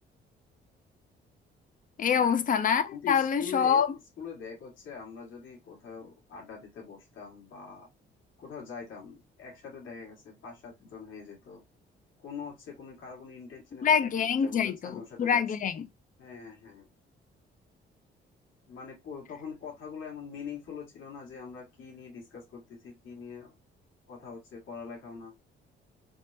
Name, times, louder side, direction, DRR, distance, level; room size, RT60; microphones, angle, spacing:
voice 1, 2.0-3.9 13.8-15.9, left 7 dB, 45° left, 0.5 m, -25 dB
voice 2, 2.9-3.8 4.2-7.9 8.4-11.6 12.2-15.4 16.2-16.9 18.6-23.5 24.1-25.3, left 6 dB, 75° left, 1.7 m, -43 dB
3.5 x 2.1 x 2.6 m
cardioid pair, 90°, 20 cm